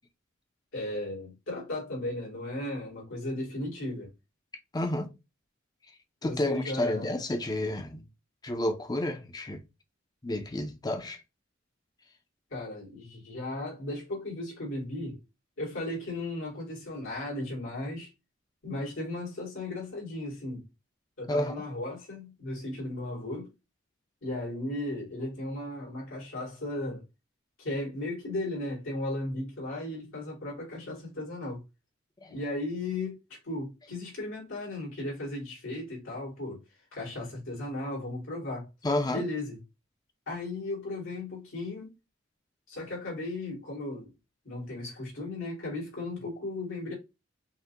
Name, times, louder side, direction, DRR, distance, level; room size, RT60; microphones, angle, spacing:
voice 1, 0.7-4.1 6.2-7.1 12.5-15.2 15.6-18.1 18.6-20.6 21.2-23.5 24.2-27.0 27.6-31.6 32.3-36.6 36.9-38.7 39.1-39.6 40.3-41.9 42.7-44.1 44.4-46.9, left 2 dB, 85° left, 2.5 m, -36 dB
voice 2, 4.7-5.1 6.2-8.0 8.4-9.6 10.2-11.2 21.3-21.5 32.2-32.3 38.8-39.2, left 1 dB, 20° left, 0.5 m, -30 dB
5.5 x 2.2 x 2.8 m
head